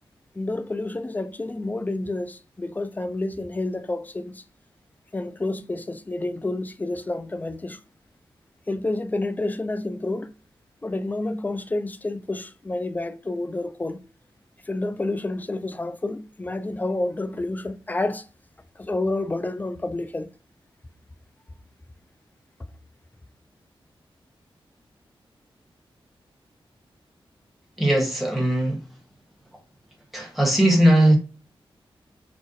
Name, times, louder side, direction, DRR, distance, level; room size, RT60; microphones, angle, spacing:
voice 1, 0.4-4.4 5.1-7.8 8.7-10.3 10.8-14.0 14.7-18.3 18.8-20.3, left 2 dB, 20° left, 0.3 m, -29 dB
voice 2, 27.8-28.8 30.1-31.2, right 1 dB, ahead, 1.1 m, -19 dB
2.5 x 2.0 x 3.9 m
cardioid pair, 60°, 10 cm